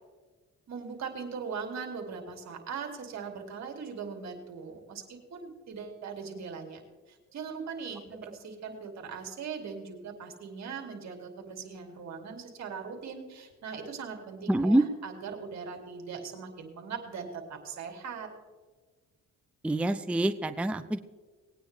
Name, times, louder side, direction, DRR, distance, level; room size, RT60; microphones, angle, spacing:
voice 1, 0.7-6.8 7.1-18.3, right 5 dB, 65° right, 3 dB, 2.6 m, -40 dB
voice 2, 14.5-14.8 19.6-21.0, right 1 dB, 5° right, 10 dB, 0.5 m, -26 dB
20.0 x 9.3 x 3.3 m, 1.4 s
cardioid pair, 90°, 30 cm